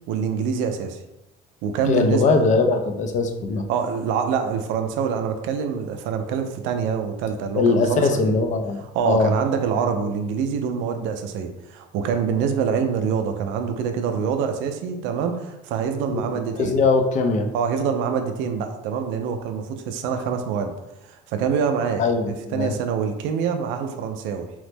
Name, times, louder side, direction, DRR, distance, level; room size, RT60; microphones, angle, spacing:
voice 1, 0.1-1.0 1.6-2.4 3.7-8.4 8.8-16.8 17.5-20.7 21.0-22.1 22.5-24.5, right 6 dB, 75° right, 6 dB, 0.4 m, -25 dB
voice 2, 1.9-3.6 7.5-9.3 16.1-17.5 22.0-22.7, left 4 dB, 40° left, 6 dB, 0.4 m, -21 dB
3.0 x 2.0 x 3.2 m, 0.93 s
cardioid pair, 120°, 20 cm